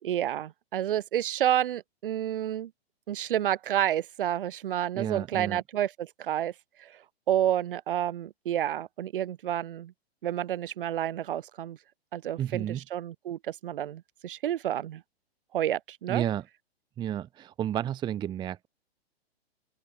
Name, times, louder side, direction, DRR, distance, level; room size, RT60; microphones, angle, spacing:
voice 1, 0.0-2.7 3.1-6.5 6.8-7.0 7.3-9.9 10.2-11.8 12.1-15.0 15.5-16.2, right 11 dB, 55° right, 4.5 m, -30 dB
voice 2, 5.0-5.6 12.4-12.8 16.1-16.4 17.0-18.7, right 10 dB, 15° right, 0.7 m, -31 dB
open air
figure-of-eight pair, 110°, 32 cm